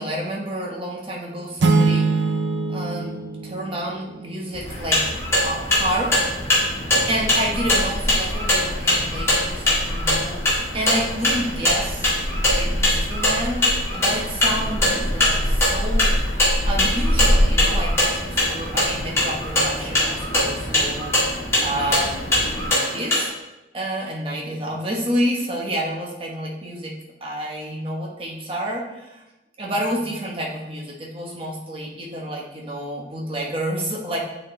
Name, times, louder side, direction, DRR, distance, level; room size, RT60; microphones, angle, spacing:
voice 1, 0.0-2.1 2.7-3.2 3.4-5.2 5.4-6.3 7.1-10.4 10.7-12.0 12.5-16.2 16.7-23.3 23.7-26.9 27.2-29.2 29.6-34.2, equal, 30° right, -2 dB, 1.2 m, -29 dB
Ab ouch, 1.6-4.4, right 3 dB, 90° right, 0.6 m, -22 dB
Background Noise City Birds Jet, 4.5-22.7, equal, 35° left, 1.4 m, -27 dB
sound 1, 4.7-23.3, left 1 dB, 15° left, 1.9 m, -22 dB
8.4 x 4.3 x 3.2 m, 0.99 s
head